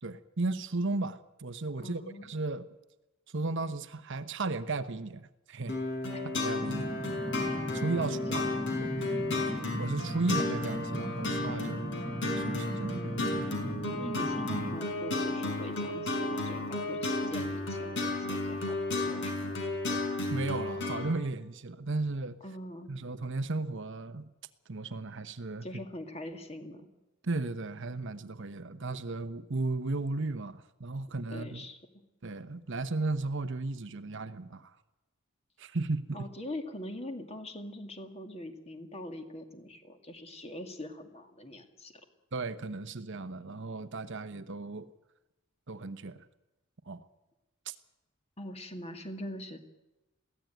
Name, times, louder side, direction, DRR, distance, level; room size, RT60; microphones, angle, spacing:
voice 1, 0.0-2.7 3.3-5.8 6.4-6.9 7.7-8.5 8.8-8.9 9.8-11.9 12.4-13.2 20.3-22.4 22.9-24.3 24.7-25.6 27.2-31.6 32.2-34.7 35.6-36.2 42.3-44.9 45.7-46.2 46.9-47.1 47.7-47.8, right 3 dB, 55° right, 11 dB, 1.0 m, -35 dB
voice 2, 1.8-2.3 6.1-6.2 8.0-8.7 13.9-19.6 22.4-22.9 25.6-26.9 31.3-31.8 36.1-42.0 48.4-49.6, left 1 dB, 30° left, 6 dB, 2.3 m, -43 dB
sound 1, 5.7-21.1, left 2 dB, 55° left, 5.5 m, -33 dB
sound 2, 6.6-14.8, equal, 10° right, 1.3 m, -38 dB
22.5 x 16.0 x 9.3 m, 1.0 s
head